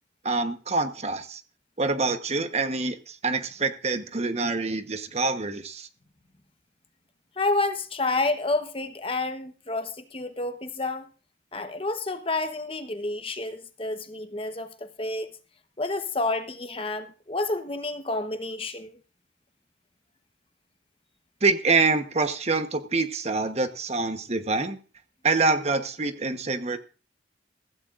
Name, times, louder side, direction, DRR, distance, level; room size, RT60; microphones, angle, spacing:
voice 1, 0.2-1.4 1.8-5.9 21.4-24.8 25.2-26.8, right 3 dB, 35° right, 1.1 m, -26 dB
voice 2, 7.4-11.1 11.5-15.3 15.8-19.0, left 2 dB, 30° left, 1.0 m, -29 dB
15.5 x 15.5 x 2.5 m
head